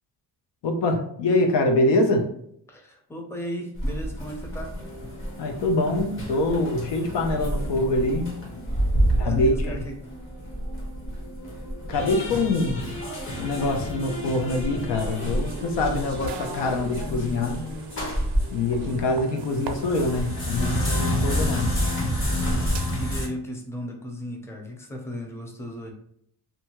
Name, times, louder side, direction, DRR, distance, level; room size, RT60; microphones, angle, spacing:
voice 1, 0.6-2.3 5.4-8.4 9.2-9.8 11.9-12.8 13.4-17.6 18.5-21.7, left 2 dB, 80° left, 4 dB, 0.6 m, -24 dB
voice 2, 2.7-4.7 8.8-10.0 18.4-18.5 18.8-19.0 22.6-25.9, equal, 5° left, 2 dB, 0.5 m, -36 dB
sound 1, 3.7-19.0 19.4-23.3, equal, 30° left, 0.9 m, -29 dB
sound 2, 15.0-22.9, right 5 dB, 70° right, 0.5 m, -40 dB
2.7 x 2.3 x 2.9 m, 0.69 s
cardioid pair, 95°, 42 cm